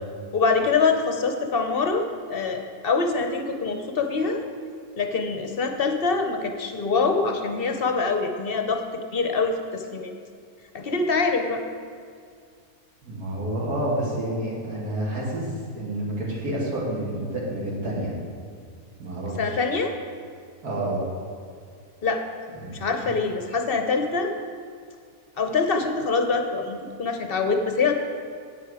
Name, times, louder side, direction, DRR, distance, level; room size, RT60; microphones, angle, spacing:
voice 1, 0.3-4.4 5.0-10.1 10.7-11.6 19.4-19.9 22.0-22.2 22.7-24.3 25.4-28.0, left 4 dB, 50° left, 5 dB, 0.7 m, -24 dB
voice 2, 13.0-18.1 19.0-19.7 20.6-21.0 22.6-22.7, right 1 dB, 75° right, -4 dB, 2.8 m, -29 dB
9.9 x 8.8 x 4.8 m, 2.2 s
omnidirectional pair, 1.7 m